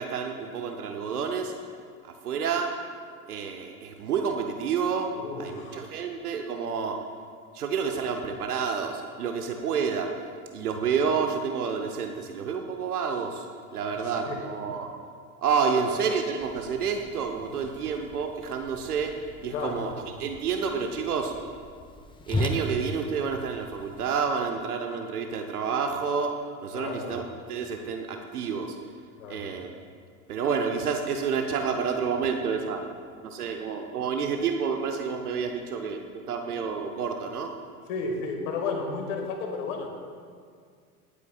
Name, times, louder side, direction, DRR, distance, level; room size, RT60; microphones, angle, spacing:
voice 1, 0.0-1.5 2.0-2.8 3.3-7.1 7.5-10.1 10.5-13.5 13.7-14.9 15.4-21.3 22.3-27.2 27.5-28.8 29.3-29.7 30.3-32.8 33.2-37.5, right 6 dB, 75° right, 4 dB, 0.9 m, -29 dB
voice 2, 5.1-5.9 13.9-14.4 15.6-15.8 19.5-19.9 26.7-27.2 29.2-29.5 37.9-39.9, left 4 dB, 60° left, 2 dB, 2.0 m, -33 dB
Whoosh swoosh swish, 16.4-24.2, left 1 dB, 10° left, 0.7 m, -38 dB
23.5 x 8.3 x 2.4 m, 2.1 s
figure-of-eight pair, 75°, 45 cm